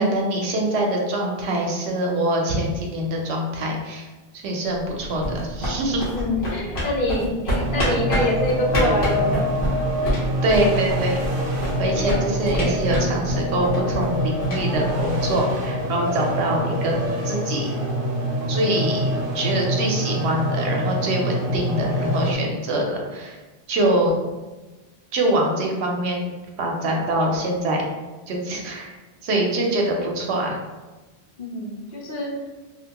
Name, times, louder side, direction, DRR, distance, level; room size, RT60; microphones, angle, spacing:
voice 1, 0.0-4.1 4.3-6.1 10.4-11.2 11.8-16.9 17.2-17.7 18.5-23.4 23.7-24.1 25.1-26.3 26.6-27.9 28.3-28.9 29.2-30.6, right 1 dB, 85° right, 0 dB, 0.9 m, -24 dB
sound 1, 4.8-15.6, equal, 80° left, 1.3 m, -28 dB
voice 2, 6.1-9.7 10.0-10.2 31.4-32.3, left 1 dB, 60° left, -3 dB, 0.8 m, -26 dB
sound 2, 7.6-22.3, equal, 60° right, 0.8 m, -25 dB
2.8 x 2.2 x 2.8 m, 1.2 s
omnidirectional pair, 1.1 m